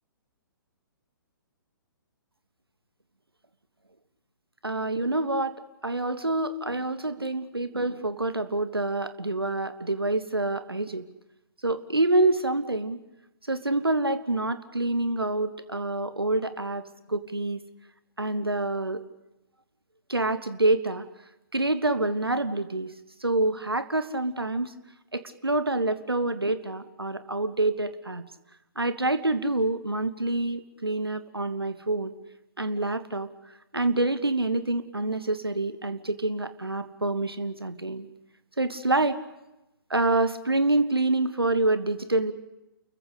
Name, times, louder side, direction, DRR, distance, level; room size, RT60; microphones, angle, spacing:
voice 1, 4.6-5.5 5.8-11.1 11.6-13.0 13.5-16.8 17.1-17.6 18.2-19.0 20.1-21.1 21.5-22.9 23.2-24.7 25.1-28.2 28.8-32.1 32.6-33.3 33.7-38.1 38.6-39.2 39.9-42.3, right 2 dB, 85° right, 12 dB, 1.1 m, -27 dB
29.0 x 15.0 x 8.3 m, 0.95 s
figure-of-eight pair, 125°, 12 cm